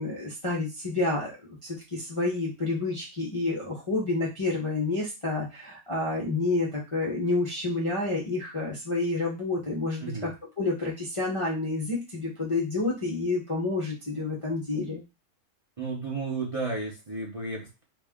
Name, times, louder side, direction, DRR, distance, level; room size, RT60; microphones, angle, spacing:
voice 1, 0.0-1.4 1.6-10.3 10.6-15.0, left 2 dB, 35° left, -5 dB, 0.5 m, -29 dB
voice 2, 15.8-17.8, right 3 dB, 30° right, -4 dB, 0.6 m, -33 dB
3.0 x 2.4 x 3.5 m, 0.26 s
omnidirectional pair, 1.5 m